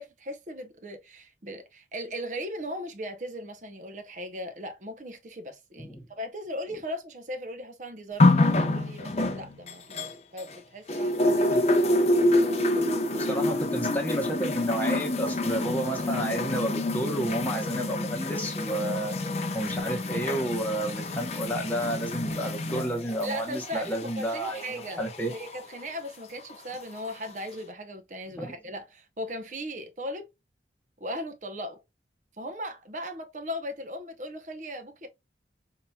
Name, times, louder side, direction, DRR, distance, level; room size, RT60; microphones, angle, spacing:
voice 1, 0.0-11.5 12.0-12.1 23.2-30.3 31.0-31.8 32.4-35.1, equal, 45° right, 0.7 m, -38 dB
sound 1, 8.2-10.6 10.9-25.6 26.5-26.6, left 1 dB, 35° left, 0.6 m, -27 dB
voice 2, 13.1-19.2 19.5-24.6 25.0-25.3 28.3-28.5, right 1 dB, 10° left, 0.9 m, -31 dB
4.6 x 2.8 x 2.2 m
head